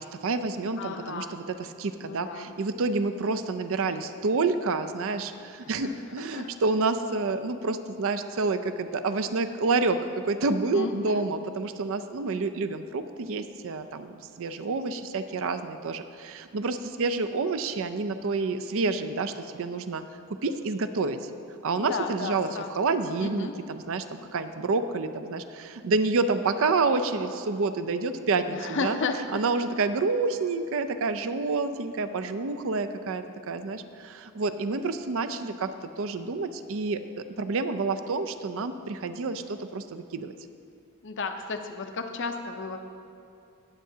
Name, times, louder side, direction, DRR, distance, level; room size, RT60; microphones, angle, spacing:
voice 1, 0.0-20.0 20.4-21.3 21.6-29.0 29.3-40.3, right 3 dB, 65° right, 9 dB, 0.5 m, -28 dB
voice 2, 0.8-1.3 2.0-2.5 5.8-5.9 6.3-6.5 10.7-11.3 21.8-22.7 23.2-23.5 28.5-29.4 41.0-42.8, left 4 dB, 55° left, 6 dB, 0.6 m, -33 dB
18.5 x 7.7 x 2.8 m, 2.5 s
head